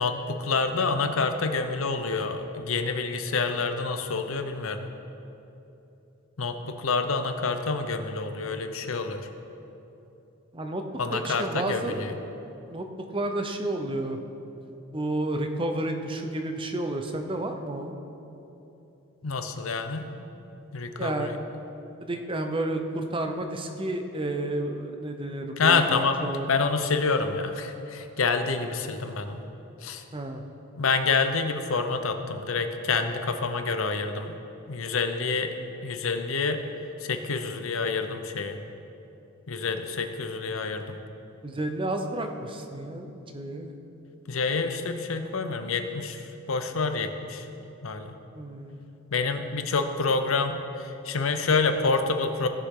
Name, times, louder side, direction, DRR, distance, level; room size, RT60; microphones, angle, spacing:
voice 1, 0.0-4.8 6.4-9.3 11.0-12.1 19.2-20.1 20.7-21.4 25.6-26.2 26.5-29.4 29.8-30.0 30.8-34.4 34.7-35.5 35.8-36.6 37.0-38.6 39.5-41.0 44.3-47.5 47.8-48.2 49.1-52.5, left 4 dB, 75° left, 7 dB, 0.7 m, -27 dB
voice 2, 11.1-12.0 12.7-12.9 13.1-14.2 14.9-17.9 21.0-21.3 22.0-26.5 30.1-30.4 41.4-43.7 48.3-48.8, right 1 dB, 25° right, 5 dB, 0.7 m, -31 dB
16.0 x 6.9 x 3.7 m, 2.9 s
head